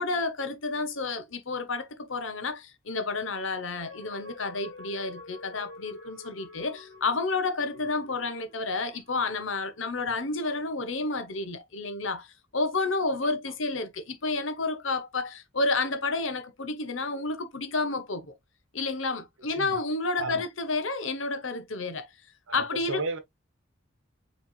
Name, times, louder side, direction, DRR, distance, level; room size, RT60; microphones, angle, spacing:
voice 1, 0.0-18.3 18.7-22.1 22.5-23.0, left 3 dB, 75° left, 1.0 m, -30 dB
sound 1, 3.8-9.5 10.0-10.1, left 3 dB, 60° left, 1.9 m, -48 dB
voice 2, 19.5-19.8 20.2-20.5 22.5-23.2, right 3 dB, 80° right, 0.9 m, -34 dB
5.4 x 3.4 x 2.4 m
head